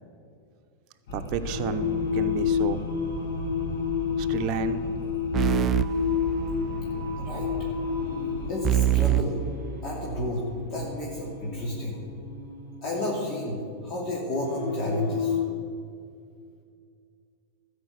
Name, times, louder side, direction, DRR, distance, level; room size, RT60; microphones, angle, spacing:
sound 1, 1.1-8.5, equal, 70° left, 1.7 m, -36 dB
voice 1, 1.1-1.9 2.1-2.8 4.2-4.8, right 8 dB, 50° right, 6 dB, 0.7 m, -31 dB
Singing, 1.4-15.4, left 7 dB, 90° left, 2.7 m, -31 dB
sound 2, 5.3-7.0 8.6-10.4, right 12 dB, 30° right, 0.3 m, -26 dB
voice 2, 7.2-7.5 8.5-9.4 9.8-12.0 12.8-15.3, left 1 dB, 40° left, -5 dB, 2.8 m, -31 dB
13.0 x 5.2 x 8.6 m, 2.3 s
hypercardioid pair, 105°, 0 cm